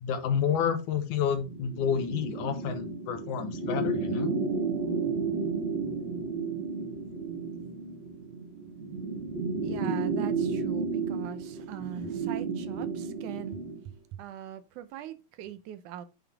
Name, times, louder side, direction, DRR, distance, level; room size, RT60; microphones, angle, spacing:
voice 1, 0.0-4.3, left 7 dB, 85° left, 2.6 m, -29 dB
sound 1, 1.5-13.8, right 4 dB, 40° right, 0.9 m, -32 dB
voice 2, 9.6-13.6 14.1-16.1, right 10 dB, 80° right, 2.3 m, -41 dB
9.2 x 5.9 x 3.5 m
omnidirectional pair, 3.5 m